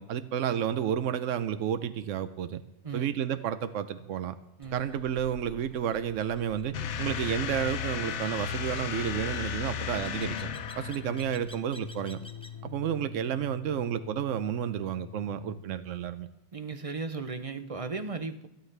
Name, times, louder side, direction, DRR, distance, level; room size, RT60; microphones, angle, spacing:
voice 1, 0.0-2.6 2.9-4.4 4.7-10.4 10.8-12.2 12.6-16.3, right 9 dB, 90° right, 12 dB, 1.0 m, -31 dB
sound 1, 4.6-12.6, left 1 dB, 5° left, 0.7 m, -52 dB
sound 2, 6.7-11.4, left 8 dB, 70° left, 1.0 m, -34 dB
sound 3, 9.8-15.6, left 8 dB, 55° left, 0.4 m, -44 dB
voice 2, 16.5-18.5, right 4 dB, 35° right, 9 dB, 0.6 m, -36 dB
26.0 x 9.1 x 3.3 m, 0.90 s
omnidirectional pair, 1.2 m